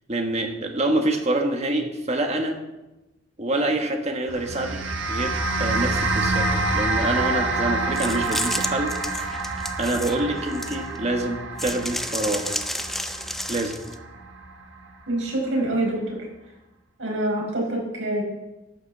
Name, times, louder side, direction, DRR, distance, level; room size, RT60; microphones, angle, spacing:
voice 1, 0.1-2.6 3.4-4.8 5.1-8.9 9.8-12.5 13.5-13.8, right 1 dB, 35° right, 4 dB, 1.4 m, -26 dB
sound 1, 4.3-14.8, right 2 dB, 70° right, 1.4 m, -27 dB
sound 2, 7.9-11.0 11.6-13.9, left 1 dB, ahead, 0.5 m, -31 dB
voice 2, 15.1-16.0 17.0-18.2, right 1 dB, 85° right, -2 dB, 4.9 m, -25 dB
12.0 x 6.2 x 7.4 m, 1.0 s
head